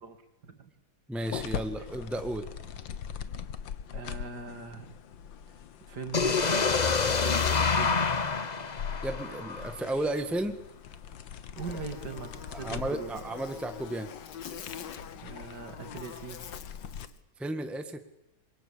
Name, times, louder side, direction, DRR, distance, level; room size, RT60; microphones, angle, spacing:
voice 1, 1.1-2.5 9.0-10.6 12.5-14.1 17.4-18.0, right 1 dB, ahead, 8 dB, 1.5 m, -33 dB
sound 1, 1.2-17.1, left 8 dB, 85° left, 1.9 m, -42 dB
voice 2, 3.9-5.0 5.9-8.1 11.6-13.2 15.2-16.4, right 5 dB, 60° right, 7 dB, 2.9 m, -41 dB
sound 2, 6.1-10.0, left 5 dB, 30° left, 0.8 m, -27 dB
Buzz, 11.6-17.2, left 8 dB, 70° left, 1.9 m, -46 dB
27.0 x 22.5 x 8.7 m, 0.86 s
omnidirectional pair, 2.0 m